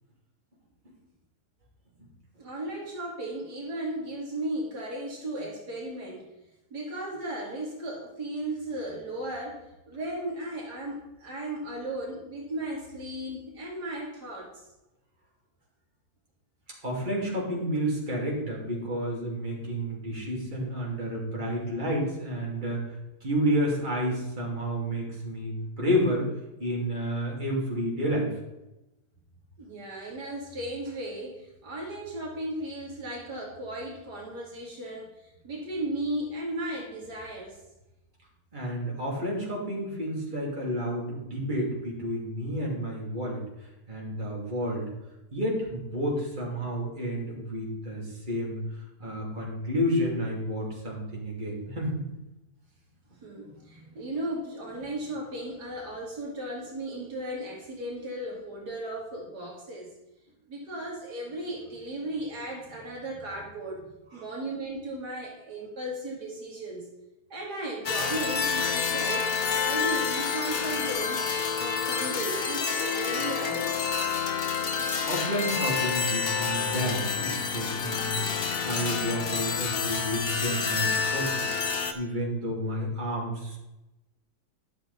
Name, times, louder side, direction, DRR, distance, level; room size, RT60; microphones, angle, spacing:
voice 1, 2.4-6.3 6.7-14.6 29.6-37.6 53.2-59.9 60.5-66.9 67.3-69.3 69.6-73.9, right 1 dB, 75° right, -2 dB, 2.4 m, -36 dB
voice 2, 16.8-26.3 26.6-28.3 38.5-44.9 45.3-52.0 64.1-64.2 75.0-81.5 81.9-83.6, equal, 30° right, -4 dB, 2.9 m, -30 dB
sound 1, 67.8-81.9, left 6 dB, 50° left, 0.8 m, -28 dB
11.5 x 6.8 x 4.2 m, 0.95 s
omnidirectional pair, 1.8 m